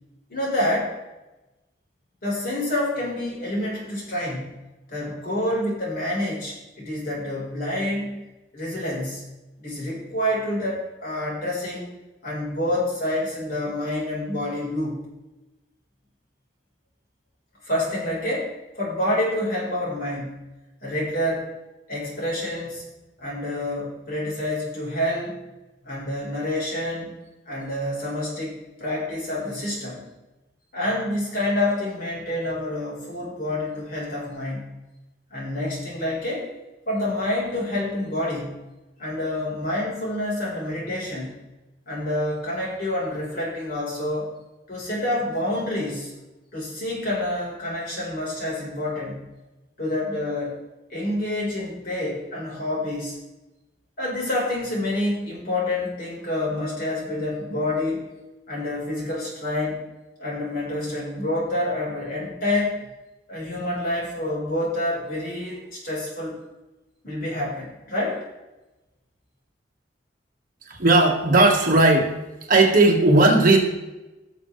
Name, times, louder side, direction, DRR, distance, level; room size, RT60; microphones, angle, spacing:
voice 1, 0.3-0.9 2.2-4.5 4.9-8.2 8.5-9.3 9.6-11.8 12.2-15.0 17.6-20.4 20.8-21.5 21.9-22.8 23.2-25.4 25.8-27.1 27.5-30.0 30.7-34.7 35.3-36.5 36.9-38.6 39.0-41.4 41.9-44.3 44.7-46.1 46.5-49.2 49.8-50.6 50.9-53.2 54.0-58.0 58.5-59.8 60.2-62.8 63.3-66.4 67.0-68.2, left 1 dB, 50° left, -4 dB, 4.2 m, -27 dB
voice 2, 70.7-72.1 72.5-73.6, right 2 dB, 50° right, 0 dB, 1.6 m, -16 dB
17.5 x 6.6 x 3.2 m, 1.0 s
head